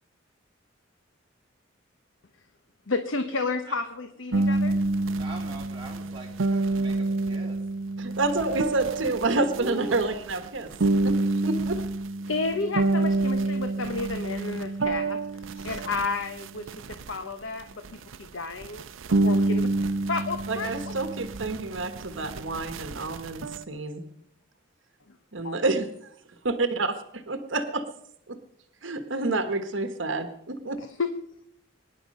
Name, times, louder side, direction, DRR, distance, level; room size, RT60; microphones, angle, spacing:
voice 1, 2.9-4.8 12.3-18.9 19.2-20.7 25.4-25.6 30.8-31.1, left 3 dB, 75° left, 7 dB, 1.0 m, -32 dB
sound 1, 4.3-17.2 17.6-18.3 18.6-23.6, right 2 dB, 85° right, 0.6 m, -28 dB
voice 2, 5.1-7.6 9.6-10.0, right 3 dB, 25° right, -2 dB, 3.9 m, -40 dB
voice 3, 8.0-10.7 11.0-11.2 11.4-11.8 20.5-24.0 25.3-26.1 26.4-26.9 27.3-27.8 28.3-28.4 28.8-30.8, right 3 dB, 70° right, 8 dB, 1.3 m, -28 dB
23.0 x 10.5 x 5.4 m, 0.75 s
head